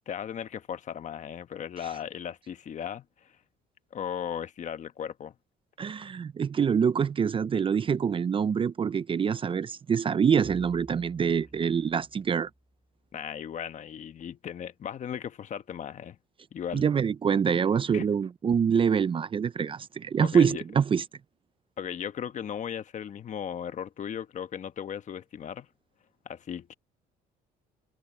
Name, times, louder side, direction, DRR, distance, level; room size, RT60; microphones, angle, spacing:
voice 1, 0.1-3.3 3.9-5.3 13.1-16.2 16.5-16.9 17.5-17.7 17.9-18.1 20.2-20.6 21.8-25.7 26.2-26.7, left 8 dB, 45° left, 1.3 m, -37 dB
voice 2, 5.8-12.5 16.7-21.0, right 7 dB, 30° right, 0.6 m, -25 dB
sound 1, 10.4-13.0, equal, ahead, 2.3 m, -51 dB
cardioid pair, 110°, 17 cm